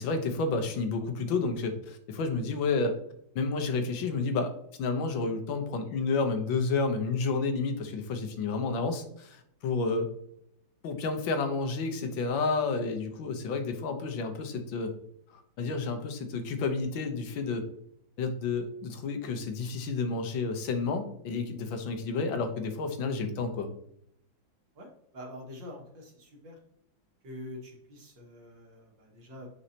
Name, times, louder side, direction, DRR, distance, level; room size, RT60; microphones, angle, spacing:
voice 1, 0.0-3.0 3.3-4.5 4.8-10.1 10.8-14.9 15.3-17.7 18.2-23.7, left 4 dB, 85° left, 7 dB, 1.7 m, -30 dB
voice 2, 24.7-26.6 27.2-29.5, left 1 dB, 75° right, -1 dB, 2.6 m, -45 dB
8.2 x 5.6 x 2.8 m, 0.71 s
omnidirectional pair, 2.1 m